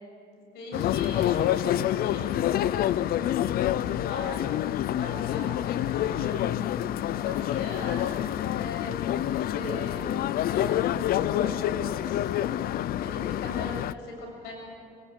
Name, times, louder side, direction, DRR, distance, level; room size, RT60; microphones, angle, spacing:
voice 1, 0.5-2.7 3.3-4.6 5.0-6.6 7.1-8.1 8.6-8.9 9.2-10.1 10.5-10.7 11.0-14.5, left 2 dB, 85° left, 1 dB, 7.5 m, -40 dB
sound 1, 0.7-13.9, left 12 dB, 65° left, 0.6 m, -27 dB
23.5 x 19.5 x 8.3 m, 2.5 s
cardioid pair, 110°, 17 cm